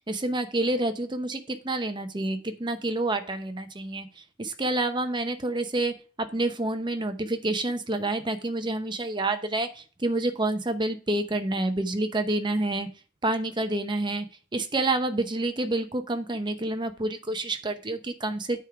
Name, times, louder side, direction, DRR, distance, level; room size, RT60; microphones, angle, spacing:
voice 1, 0.1-4.1 4.4-12.9 13.2-14.3 14.5-18.6, right 2 dB, 25° right, 8 dB, 0.8 m, -28 dB
9.0 x 3.6 x 4.7 m, 0.37 s
head